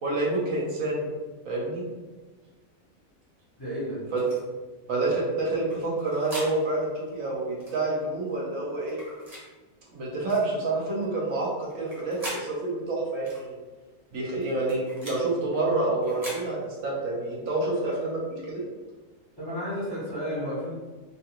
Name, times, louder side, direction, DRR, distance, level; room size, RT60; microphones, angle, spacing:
voice 1, 0.0-1.1 1.4-1.8 4.1-4.2 4.9-9.0 9.9-13.6 14.1-18.6, right 2 dB, 75° right, -4 dB, 1.3 m, -28 dB
voice 2, 3.6-4.0 19.4-20.7, equal, 20° left, -8 dB, 0.7 m, -32 dB
sound 1, 4.1-4.4 5.7-6.5 7.6-7.8 8.9-9.4 10.3-10.5 11.7-12.4 13.2-13.4 14.4-15.2 16.0-16.4, equal, 30° right, 1.0 m, -40 dB
3.6 x 2.3 x 2.8 m, 1.3 s
omnidirectional pair, 1.4 m